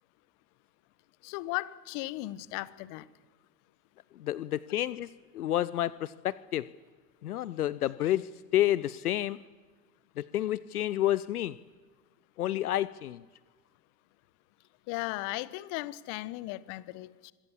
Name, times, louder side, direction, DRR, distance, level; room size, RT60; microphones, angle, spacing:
voice 1, 1.2-3.1 14.9-17.3, left 19 dB, 40° left, 17 dB, 1.2 m, -36 dB
voice 2, 4.2-6.6 7.2-9.4 10.2-11.6 12.4-13.2, left 13 dB, 70° left, 18 dB, 0.8 m, -30 dB
25.5 x 22.0 x 7.3 m, 1.4 s
figure-of-eight pair, 95°, 46 cm